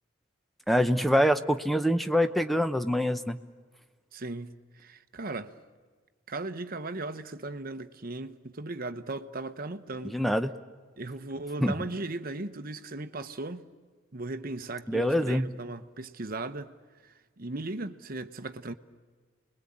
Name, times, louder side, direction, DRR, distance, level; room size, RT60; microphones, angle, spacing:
voice 1, 0.7-3.4 10.1-10.5 11.6-11.7 14.9-15.5, equal, ahead, 0.8 m, -25 dB
voice 2, 4.1-5.5 6.3-10.2 11.0-13.7 14.1-16.7 17.0-18.7, right 2 dB, 45° right, 0.9 m, -37 dB
29.5 x 21.5 x 8.6 m
head